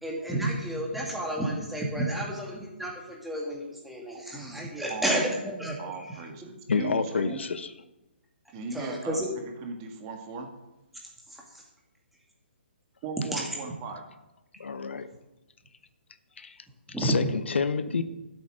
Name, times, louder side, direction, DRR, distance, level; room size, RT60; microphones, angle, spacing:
voice 1, 0.0-5.9 7.1-7.4 8.7-9.3 11.3-11.6 13.3-13.4 16.9-17.2, right 1 dB, ahead, -2 dB, 2.1 m, -31 dB
voice 2, 4.9-5.3 5.8-7.4 8.5-9.2 9.6-10.5 13.0-14.0, right 4 dB, 25° right, 4 dB, 1.7 m, -38 dB
voice 3, 6.7-7.7 14.6-15.1 16.4-16.6 17.0-18.0, left 5 dB, 85° left, 12 dB, 1.1 m, -28 dB
13.0 x 8.2 x 6.2 m, 0.96 s
hypercardioid pair, 160°, 6 cm